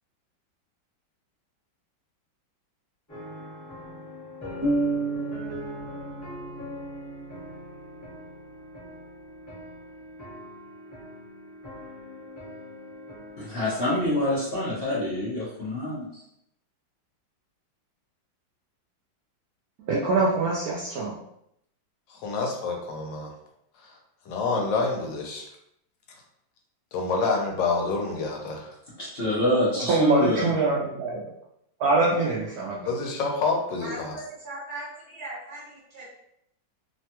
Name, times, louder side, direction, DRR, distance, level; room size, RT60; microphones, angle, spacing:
sound 1, 3.1-13.7, left 1 dB, 15° left, 0.7 m, -42 dB
sound 2, 4.6-8.4, right 2 dB, 25° right, 0.5 m, -31 dB
voice 1, 13.4-16.2 29.0-30.5, left 1 dB, 60° left, -9 dB, 0.6 m, -26 dB
voice 2, 19.9-21.1 29.9-31.2 31.8-32.9, right 3 dB, 75° right, -5 dB, 0.8 m, -24 dB
voice 3, 22.1-23.3 23.8-23.9 24.3-25.4 26.9-28.7 32.9-34.1, left 3 dB, 75° left, 1 dB, 1.3 m, -27 dB
voice 4, 33.8-36.0, right 1 dB, 55° right, -6 dB, 1.5 m, -39 dB
3.2 x 2.2 x 2.8 m, 0.77 s
omnidirectional pair, 2.1 m